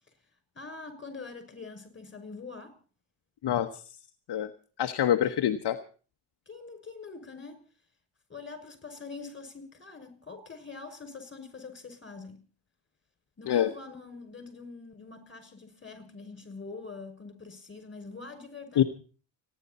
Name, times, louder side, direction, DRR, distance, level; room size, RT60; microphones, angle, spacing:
voice 1, 0.5-2.8 5.2-5.4 6.5-7.6 8.3-12.4 13.4-18.9, left 4 dB, 25° left, 6.0 m, -44 dB
voice 2, 3.4-3.8 4.3-4.5 4.8-5.8 13.5-13.7 18.8-18.9, left 10 dB, 55° left, 1.1 m, -25 dB
30.0 x 10.5 x 4.2 m
cardioid pair, 100°, 48 cm